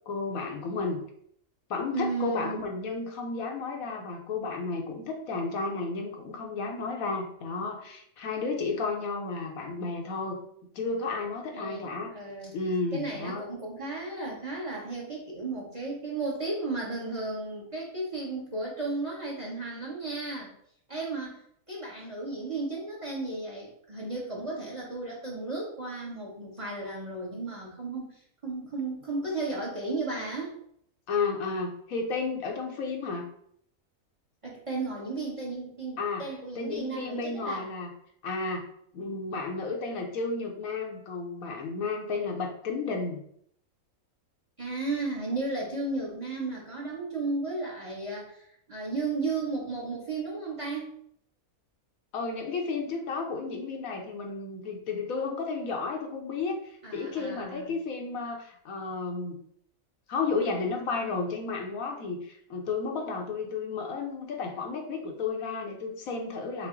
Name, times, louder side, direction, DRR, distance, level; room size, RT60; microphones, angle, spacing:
voice 1, 0.1-1.0 1.7-10.4 10.7-12.1 12.5-13.4 31.1-33.3 36.0-36.3 36.6-37.9 38.2-38.7 38.9-43.2 52.1-59.4 60.1-66.7, left 4 dB, 75° left, 2 dB, 1.1 m, -32 dB
voice 2, 1.9-2.6 11.5-12.6 12.9-20.5 20.9-30.6 34.4-37.7 44.6-51.0 56.8-57.7, right 3 dB, 25° right, -3 dB, 0.8 m, -34 dB
5.7 x 2.1 x 3.7 m, 0.67 s
omnidirectional pair, 1.5 m